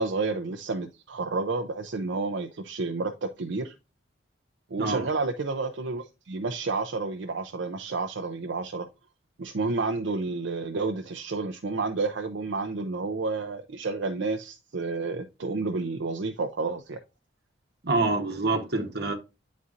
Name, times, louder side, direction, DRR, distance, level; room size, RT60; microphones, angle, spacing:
voice 1, 0.0-3.7 4.7-8.9 9.4-17.0, right 3 dB, 70° right, 0.5 m, -30 dB
voice 2, 4.8-5.1 17.8-19.1, right 3 dB, 55° right, 1.1 m, -26 dB
9.5 x 4.2 x 2.5 m
head